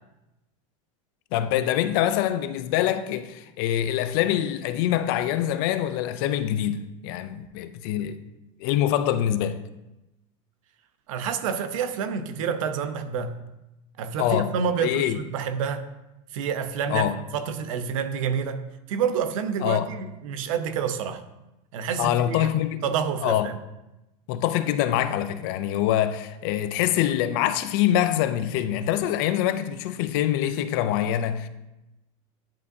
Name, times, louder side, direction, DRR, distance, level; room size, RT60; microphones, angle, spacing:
voice 1, 1.3-8.2 8.6-9.6 14.2-14.5 14.8-15.2 16.9-17.2 19.6-19.9 22.0-22.8 23.2-23.5 24.3-31.5, left 11 dB, 45° left, 0.4 m, -24 dB
voice 2, 11.1-13.4 14.0-15.9 16.3-18.6 18.9-21.2 21.7-22.5 22.8-23.6, right 7 dB, 85° right, 0.7 m, -28 dB
10.5 x 5.2 x 2.7 m
supercardioid pair, 180°, 17 cm